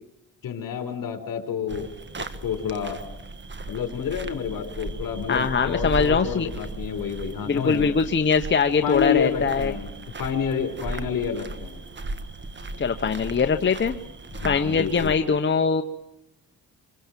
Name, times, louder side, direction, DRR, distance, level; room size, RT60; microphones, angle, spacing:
voice 1, 0.4-1.9 2.4-3.0 3.7-7.9 8.8-9.9 10.2-11.8 14.3-15.1, left 7 dB, 65° left, 6 dB, 4.8 m, -29 dB
sound 1, 1.7-15.2, right 2 dB, 30° right, 1.6 m, -36 dB
voice 2, 5.3-6.5 7.4-9.7 12.8-14.0 14.4-15.8, left 5 dB, 30° left, 6 dB, 1.1 m, -22 dB
26.0 x 24.5 x 7.6 m, 0.84 s
cardioid pair, 100°, 36 cm